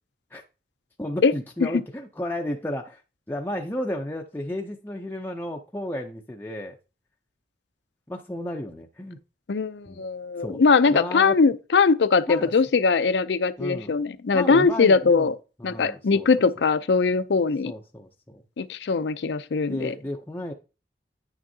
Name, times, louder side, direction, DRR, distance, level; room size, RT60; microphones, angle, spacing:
voice 1, 1.0-3.0 3.3-6.8 8.1-9.2 9.9-10.0 10.4-10.6 10.9-11.4 12.3-12.5 13.6-13.9 14.3-15.3 15.6-16.3 16.6-16.7 17.7-18.4 19.7-20.5, left 1 dB, 10° left, 0.5 m, -33 dB
voice 2, 9.5-15.3 15.6-17.7 18.6-19.9, left 4 dB, 75° left, 0.5 m, -21 dB
9.7 x 6.1 x 2.7 m
head